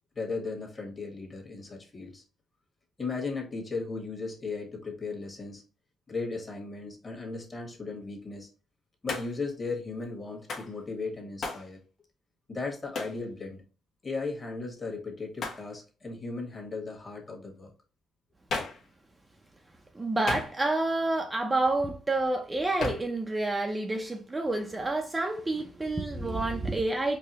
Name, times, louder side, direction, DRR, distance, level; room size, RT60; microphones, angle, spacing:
voice 1, 0.1-2.2 3.0-5.6 6.1-8.5 9.0-11.8 12.5-13.6 14.0-17.7, left 3 dB, 30° left, 1.4 m, -36 dB
Hands, 9.1-9.5 10.5-10.7 11.4-11.7 12.9-13.2 15.4-15.7 18.5-18.9 20.3-20.8 22.8-23.2, left 3 dB, 60° left, 1.0 m, -34 dB
voice 2, 19.9-27.2, right 2 dB, 20° right, 0.6 m, -29 dB
4.7 x 2.2 x 2.9 m
cardioid pair, 90°, 0 cm